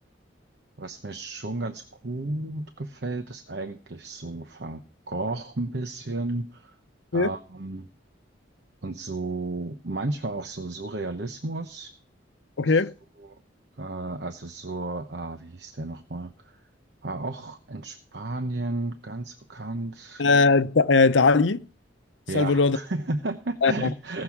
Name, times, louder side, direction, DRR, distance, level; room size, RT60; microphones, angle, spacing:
voice 1, 0.8-6.7 7.1-7.9 8.8-11.9 12.7-12.8 13.2-13.3 13.8-16.3 17.0-20.2 22.3-24.2, right 2 dB, 65° right, 1.0 m, -33 dB
voice 2, 12.6-12.9 20.2-21.6 22.3-22.8 23.6-23.9, left 4 dB, 80° left, 0.7 m, -19 dB
18.5 x 6.9 x 6.0 m
head